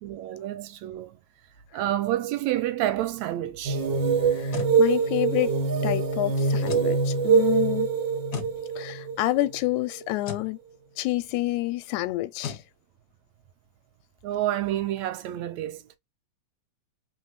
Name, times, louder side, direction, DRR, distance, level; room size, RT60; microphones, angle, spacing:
voice 1, 0.0-1.2 1.7-3.8 14.2-15.8, right 13 dB, 80° right, 1.9 m, -29 dB
sound 1, 3.6-10.1, right 5 dB, 50° right, 1.5 m, -24 dB
sound 2, 4.2-4.8 6.6-6.9 8.3-8.6 10.2-10.5 12.4-12.7, left 8 dB, 60° left, 1.1 m, -35 dB
voice 2, 4.3-5.6 5.8-7.9 8.8-10.6 11.0-12.6, left 17 dB, 90° left, 2.0 m, -28 dB
4.3 x 3.9 x 3.0 m
omnidirectional pair, 3.3 m